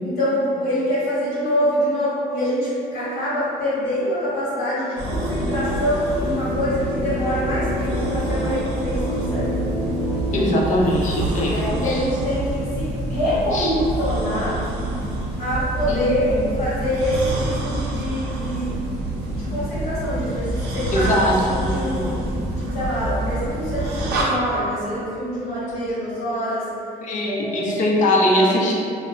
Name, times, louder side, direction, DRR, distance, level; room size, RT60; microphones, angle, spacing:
voice 1, 0.0-9.7 11.4-14.6 15.4-18.9 19.3-22.2 22.5-26.7 27.2-27.8, equal, 65° left, -10 dB, 1.1 m, -25 dB
sound 1, 5.0-24.2, right 1 dB, 80° right, 0.5 m, -27 dB
sound 2, 5.1-11.1, equal, 20° right, 0.4 m, -29 dB
voice 2, 10.3-11.6 11.9-12.0 13.5-13.7 15.9-16.4 20.9-22.2 27.0-28.7, left 1 dB, 50° left, -3 dB, 0.6 m, -21 dB
2.2 x 2.0 x 3.8 m, 2.6 s
cardioid pair, 110°, 17 cm